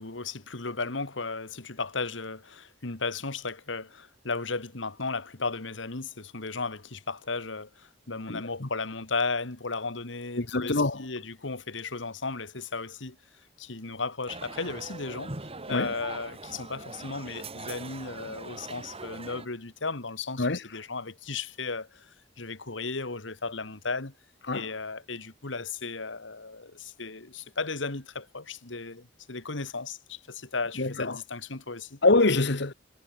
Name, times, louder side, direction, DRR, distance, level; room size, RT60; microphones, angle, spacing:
voice 1, 0.0-13.2 13.6-15.3 15.7-24.1 24.5-32.0, left 4 dB, 85° left, 2.1 m, -35 dB
voice 2, 8.3-8.7 10.4-11.1 15.7-15.9 20.4-20.6 24.5-24.6 30.8-31.2 32.0-32.7, left 2 dB, 65° left, 1.6 m, -25 dB
sound 1, 14.3-19.5, right 3 dB, 30° right, 2.6 m, -41 dB
head